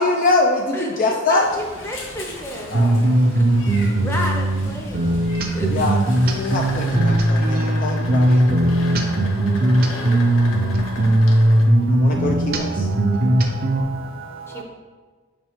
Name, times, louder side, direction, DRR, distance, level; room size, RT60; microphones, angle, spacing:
voice 1, 0.0-1.5 2.7-3.0 5.7-6.0 6.2-8.7 10.9-11.2 11.9-12.9, left 2 dB, 40° left, 0 dB, 0.5 m, -23 dB
voice 2, 1.3-3.2 4.0-5.2 5.5-5.7 9.5-10.2 14.5-14.6, equal, 10° left, 1 dB, 0.8 m, -31 dB
Meow, 1.4-6.9, left 1 dB, 65° left, 1.4 m, -38 dB
sound 1, 2.0-11.6, left 2 dB, 80° left, 1.0 m, -37 dB
sound 2, 2.7-13.8, right 1 dB, 45° right, 0.7 m, -18 dB
voice 3, 2.7-4.0 9.2-14.6, right 5 dB, 85° right, 1 dB, 1.0 m, -40 dB
5.5 x 5.2 x 3.6 m, 1.4 s
head